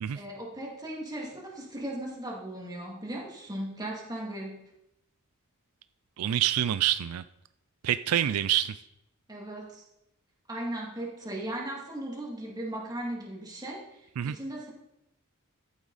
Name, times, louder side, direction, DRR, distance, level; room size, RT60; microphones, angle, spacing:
voice 1, 0.1-4.6 9.3-9.8 10.5-14.7, right 1 dB, 20° right, -2 dB, 2.6 m, -37 dB
voice 2, 6.2-7.2 7.8-8.8 14.2-14.4, right 11 dB, 75° right, 13 dB, 0.4 m, -26 dB
13.5 x 8.3 x 4.1 m, 0.85 s
head